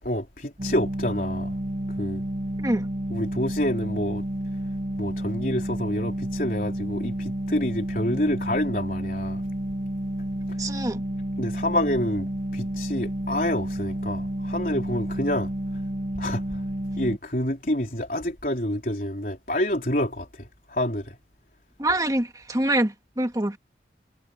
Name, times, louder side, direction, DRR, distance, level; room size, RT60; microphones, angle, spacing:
voice 1, 0.0-1.5 2.0-2.2 3.1-4.2 5.0-9.4 10.5-10.6 11.4-15.5 16.2-16.6 16.9-21.2, left 1 dB, 50° left, 4.2 m, -28 dB
sound 1, 0.6-17.2, right 1 dB, 45° right, 1.3 m, -30 dB
voice 2, 10.6-11.0 21.8-23.6, right 1 dB, 20° right, 1.7 m, -25 dB
head